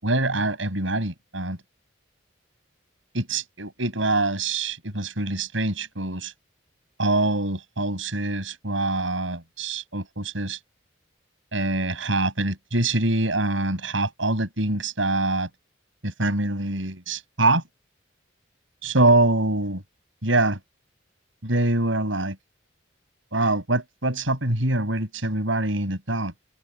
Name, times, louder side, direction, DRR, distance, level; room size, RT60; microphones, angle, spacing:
voice 1, 0.0-1.6 3.1-6.3 7.0-10.6 11.5-15.5 16.0-17.6 18.8-19.8 20.2-20.6 21.4-22.4 23.3-26.3, right 2 dB, 80° right, 7.5 m, -24 dB
head